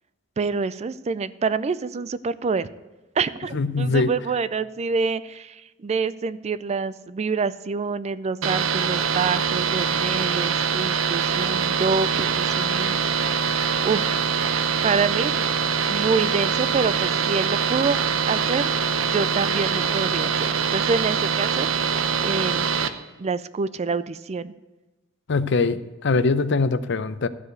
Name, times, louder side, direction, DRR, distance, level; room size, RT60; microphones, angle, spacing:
voice 1, 0.4-2.7 3.2-13.3 13.8-14.0 14.8-15.5 15.9-18.7 19.1-22.7 23.2-24.5, right 4 dB, 35° right, 16 dB, 0.4 m, -27 dB
voice 2, 3.5-4.1 25.3-27.3, left 3 dB, 65° left, 13 dB, 0.6 m, -22 dB
sound 1, 8.4-22.9, right 6 dB, 80° right, 0.8 m, -23 dB
13.5 x 4.9 x 8.0 m, 1.2 s
head